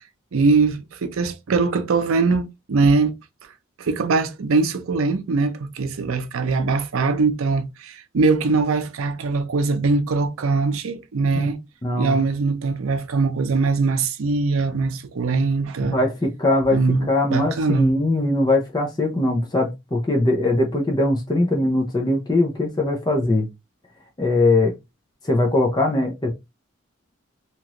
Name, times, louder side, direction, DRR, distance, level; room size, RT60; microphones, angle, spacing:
voice 1, 0.3-3.1 3.8-11.6 12.0-16.0 16.7-18.0, right 4 dB, 85° right, 0.5 m, -21 dB
voice 2, 11.8-12.2 15.9-16.8 17.1-23.4 24.2-24.7 25.2-26.3, left 2 dB, 20° left, 0.5 m, -21 dB
2.9 x 2.4 x 2.9 m
head